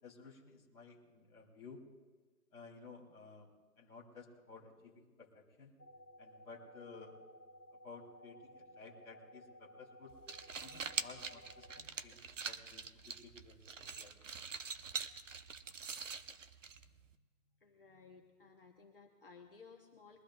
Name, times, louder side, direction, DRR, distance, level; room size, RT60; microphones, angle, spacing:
voice 1, 0.0-1.8 2.5-5.7 6.2-7.2 7.7-10.1 10.6-14.2, left 4 dB, 5° left, -15 dB, 1.2 m, -55 dB
sound 1, 5.8-11.8, equal, 75° left, 1.7 m, -58 dB
sound 2, 10.1-17.1, right 5 dB, 55° right, 0.9 m, -44 dB
voice 2, 17.6-20.2, left 5 dB, 40° left, 0 dB, 1.2 m, -58 dB
23.0 x 14.0 x 2.6 m, 1.4 s
hypercardioid pair, 175°, 45 cm